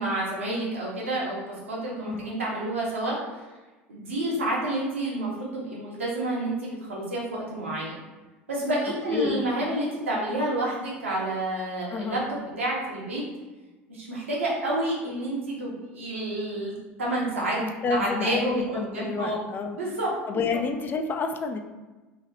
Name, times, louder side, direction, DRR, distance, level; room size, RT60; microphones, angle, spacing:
voice 1, 0.0-3.2 3.9-7.9 8.5-13.2 13.9-16.7 17.0-17.6 17.9-19.4 19.7-20.4, right 1 dB, 80° right, -5 dB, 1.0 m, -29 dB
voice 2, 2.0-2.4 9.1-9.4 11.9-12.2 17.6-19.8 20.3-21.6, left 4 dB, 30° left, 6 dB, 0.3 m, -29 dB
2.9 x 2.8 x 2.9 m, 1.2 s
figure-of-eight pair, 70°, 7 cm